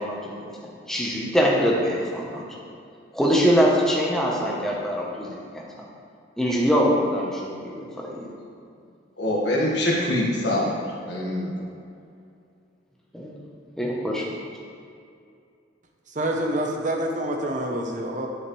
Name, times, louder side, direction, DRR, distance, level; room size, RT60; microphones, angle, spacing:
voice 1, 0.0-2.4 3.1-5.6 6.4-8.3 13.1-13.3 13.8-14.3, equal, ahead, -3 dB, 0.9 m, -23 dB
voice 2, 9.2-10.7 11.1-11.5, left 1 dB, 60° left, -3 dB, 1.6 m, -24 dB
voice 3, 16.2-18.3, right 1 dB, 40° right, 2 dB, 0.8 m, -27 dB
10.5 x 6.4 x 3.2 m, 2.5 s
head